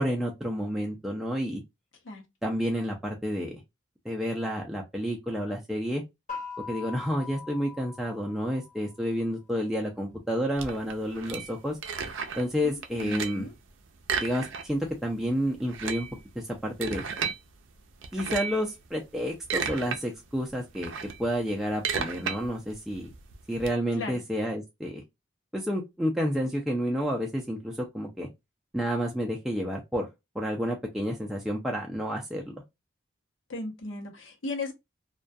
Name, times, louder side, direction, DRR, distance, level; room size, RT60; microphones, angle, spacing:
voice 1, 0.0-1.6 2.4-3.6 4.1-6.0 6.7-11.8 12.4-13.5 14.2-16.1 16.4-17.0 18.1-20.9 21.2-23.1 23.5-25.0 25.5-28.3 28.7-30.1 30.4-32.5, equal, ahead, 0.3 m, -30 dB
sound 1, 6.3-9.0, left 5 dB, 40° left, 0.8 m, -41 dB
sound 2, 10.6-12.5 12.8-13.5 14.0-14.9 15.2-15.3 15.6-17.4 18.0-18.6 19.2-20.0 20.4-23.7, right 6 dB, 80° right, 0.4 m, -33 dB
voice 2, 12.6-13.5 24.0-24.2 33.5-34.7, left 2 dB, 85° left, 0.7 m, -36 dB
2.2 x 2.2 x 2.5 m
head